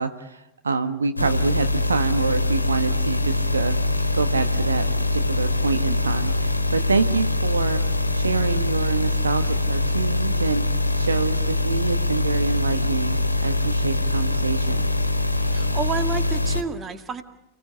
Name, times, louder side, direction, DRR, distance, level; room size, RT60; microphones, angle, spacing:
voice 1, 0.0-3.8 4.1-4.8 5.1-10.6 11.0-14.9, right 4 dB, 75° right, 9 dB, 1.2 m, -26 dB
sound 1, 1.2-16.6, left 2 dB, 85° left, 1.6 m, -23 dB
voice 2, 15.5-17.2, right 4 dB, 20° right, 8 dB, 1.9 m, -29 dB
29.5 x 18.0 x 8.4 m, 0.92 s
figure-of-eight pair, 90°, 0 cm